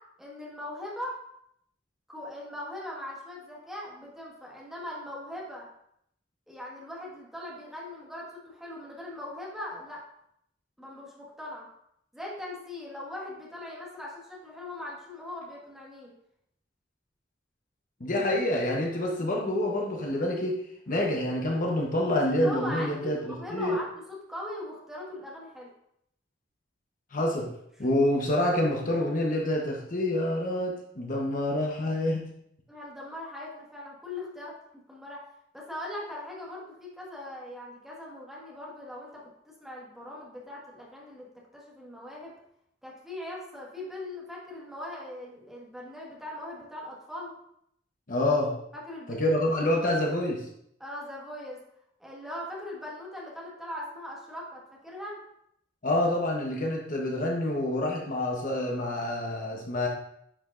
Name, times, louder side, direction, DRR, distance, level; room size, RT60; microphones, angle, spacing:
voice 1, 0.2-1.2 2.1-5.7 6.5-10.0 10.8-11.7 12.1-16.1 22.3-23.9 24.3-25.7 32.7-34.6 34.9-35.2 35.5-41.3 41.5-42.4 42.8-47.3 48.7-49.4 50.8-51.6 52.0-55.2, left 1 dB, ahead, -4 dB, 1.7 m, -40 dB
voice 2, 18.0-20.5 20.9-23.8 27.1-27.5 27.8-32.3 48.1-48.5 49.1-50.5 55.8-59.9, left 1 dB, 45° left, -1 dB, 1.0 m, -27 dB
10.0 x 5.2 x 2.5 m, 0.73 s
head